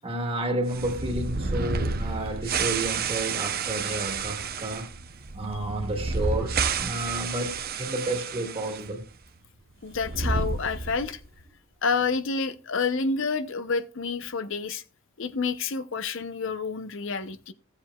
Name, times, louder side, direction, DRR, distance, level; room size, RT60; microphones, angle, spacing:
voice 1, 0.0-4.9 5.3-9.0, right 1 dB, 30° right, 1.7 m, -31 dB
sound 1, 0.7-8.9 9.1-9.2 9.9-11.2, right 4 dB, 50° right, 0.7 m, -30 dB
voice 2, 9.8-11.2 11.8-14.8 15.2-17.5, left 4 dB, 65° left, 0.7 m, -29 dB
16.5 x 7.4 x 2.3 m
head